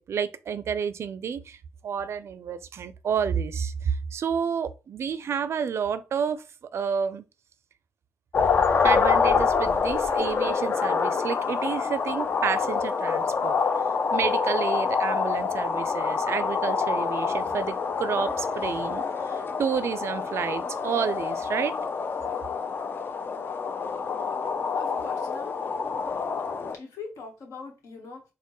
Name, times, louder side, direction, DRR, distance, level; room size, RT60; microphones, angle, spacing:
voice 1, 0.1-1.6 1.8-6.4 6.7-7.2 8.8-13.5 14.1-21.8, right 7 dB, 60° right, 0.4 m, -30 dB
sound 1, 8.3-26.8, left 5 dB, 45° left, 0.4 m, -26 dB
voice 2, 24.7-25.6 25.9-26.0 26.7-28.2, left 4 dB, 75° left, 1.2 m, -42 dB
4.3 x 2.1 x 3.0 m
cardioid pair, 90°, 5 cm